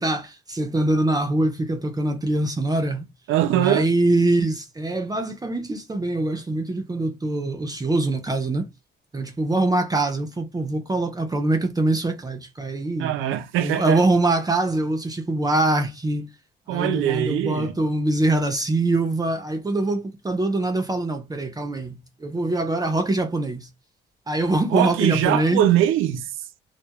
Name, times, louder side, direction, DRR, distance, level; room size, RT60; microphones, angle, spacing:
voice 1, 0.0-3.1 3.5-8.7 9.1-13.2 13.6-16.3 16.7-23.7 24.3-25.6, right 2 dB, 20° right, 0.5 m, -23 dB
voice 2, 3.3-3.9 13.0-14.0 16.7-17.7 24.7-26.3, right 11 dB, 90° right, 0.5 m, -22 dB
2.2 x 2.0 x 2.8 m
cardioid pair, 90°, 20 cm